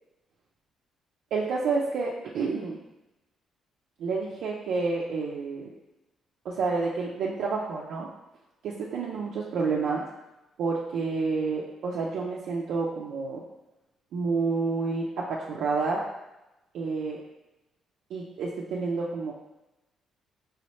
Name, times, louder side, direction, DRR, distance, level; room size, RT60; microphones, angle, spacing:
voice 1, 1.3-2.8 4.0-5.7 6.4-8.1 8.6-10.0 10.6-13.4 14.1-16.0 16.7-17.2 18.1-19.3, right 4 dB, 75° right, -4 dB, 0.5 m, -29 dB
4.7 x 3.0 x 3.1 m, 0.98 s
cardioid pair, 120°, 0 cm